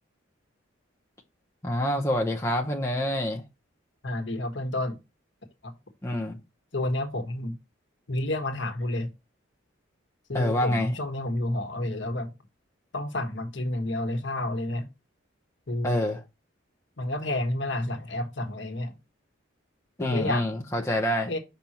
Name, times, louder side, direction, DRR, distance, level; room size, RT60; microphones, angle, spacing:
voice 1, 1.6-3.4 6.0-6.3 10.3-10.9 15.8-16.2 20.0-21.3, left 1 dB, 15° left, 0.8 m, -26 dB
voice 2, 4.0-5.0 5.6-5.7 6.7-7.5 8.1-9.1 10.3-12.3 12.9-14.9 15.7-16.0 17.0-18.9 20.0-20.4 21.3-21.4, left 1 dB, 65° left, 1.3 m, -30 dB
6.1 x 5.4 x 2.9 m
head